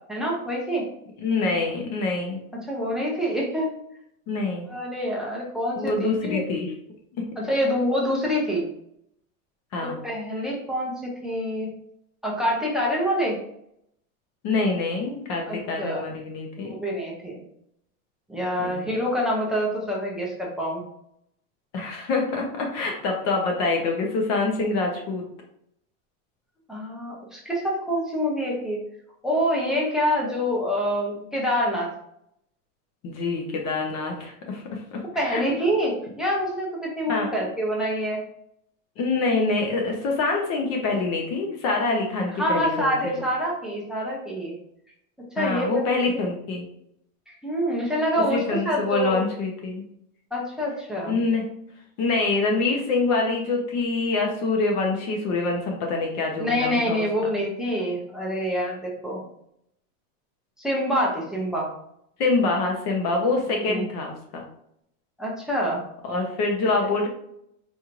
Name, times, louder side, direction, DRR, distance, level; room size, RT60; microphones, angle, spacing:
voice 1, 0.1-0.9 2.7-3.7 4.7-6.4 7.4-8.6 9.8-11.7 12.2-13.4 15.5-16.0 16.6-17.4 18.3-20.8 26.7-28.8 29.2-31.9 35.1-38.2 42.3-44.6 45.3-46.2 47.3-49.2 50.3-51.2 56.4-59.2 60.6-61.7 63.6-63.8 65.2-65.8, equal, ahead, -4 dB, 0.3 m, -26 dB
voice 2, 1.2-2.4 4.3-4.7 5.8-6.7 7.2-7.3 9.7-10.0 14.4-16.7 18.6-18.8 21.7-25.2 33.0-35.4 37.1-37.3 39.0-42.9 45.4-46.6 48.3-49.9 51.1-51.4 52.0-57.3 62.2-64.4 66.0-67.1, left 3 dB, 40° left, 1 dB, 0.8 m, -25 dB
4.3 x 3.0 x 2.5 m, 0.73 s
supercardioid pair, 150°, 41 cm